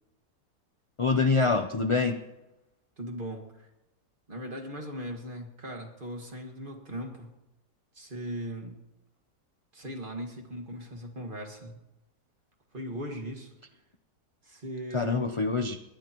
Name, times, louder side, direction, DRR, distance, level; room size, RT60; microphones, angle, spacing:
voice 1, 1.0-2.2 14.9-15.8, left 4 dB, 35° left, 7 dB, 0.4 m, -25 dB
voice 2, 3.0-3.7 4.3-7.3 7.9-8.8 9.7-11.8 12.7-13.5 14.4-15.3, equal, 30° right, 3 dB, 2.1 m, -38 dB
21.5 x 18.0 x 3.1 m, 0.97 s
omnidirectional pair, 1.7 m